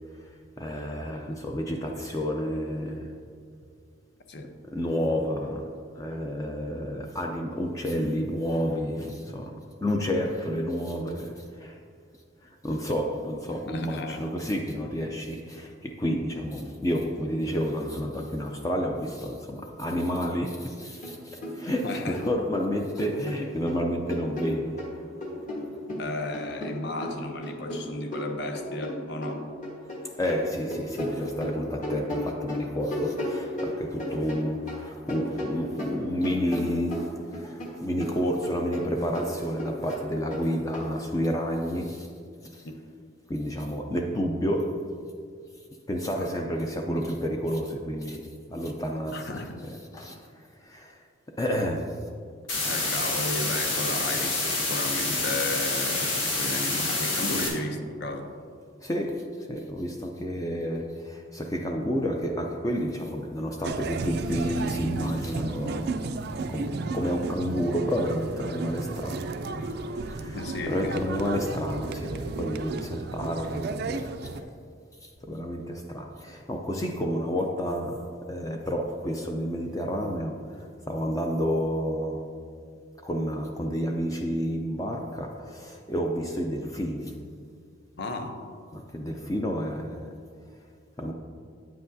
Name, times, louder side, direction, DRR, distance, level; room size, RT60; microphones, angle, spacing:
voice 1, 0.1-3.2 4.6-11.8 12.4-24.9 30.2-42.1 42.4-42.7 43.3-44.9 45.9-50.3 50.6-51.0 51.4-52.1 57.3-57.5 58.8-66.0 66.5-69.3 69.7-70.4 70.7-74.3 75.0-82.3 83.0-87.1 88.7-90.1 91.0-91.1, equal, 15° left, 0.4 m, -30 dB
voice 2, 13.7-14.3 21.8-22.3 26.0-29.5 42.6-42.7 46.2-46.3 49.1-49.6 52.6-58.4 70.3-71.0 88.0-88.5, left 2 dB, 55° left, 0.7 m, -34 dB
sound 1, 21.0-21.2 21.4-22.6 23.0-24.9 25.2-30.0 30.3-34.8 35.1-37.7 38.0-40.9, left 1 dB, 40° left, 1.3 m, -34 dB
sound 2, 52.5-57.5, left 2 dB, 85° left, 1.7 m, -27 dB
sound 3, 63.6-74.4, right 3 dB, 55° right, 0.4 m, -33 dB
8.9 x 7.7 x 2.6 m
head